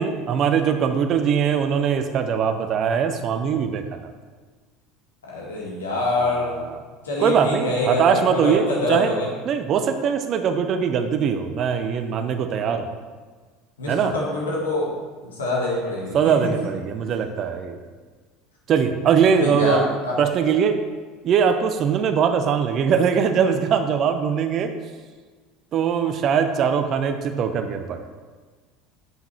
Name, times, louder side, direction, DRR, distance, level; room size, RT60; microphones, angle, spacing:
voice 1, 0.0-3.8 6.2-6.8 7.2-9.1 9.5-12.9 13.9-14.1 16.1-17.8 18.7-19.9 20.2-20.8 21.2-24.7 25.7-28.1, right 7 dB, 45° right, 8 dB, 0.7 m, -21 dB
voice 2, 5.2-6.5 7.0-9.3 13.8-14.9 15.2-16.5 19.4-20.2, left 2 dB, 75° left, -4 dB, 2.0 m, -25 dB
7.6 x 5.7 x 4.4 m, 1.4 s
figure-of-eight pair, 70°, 0 cm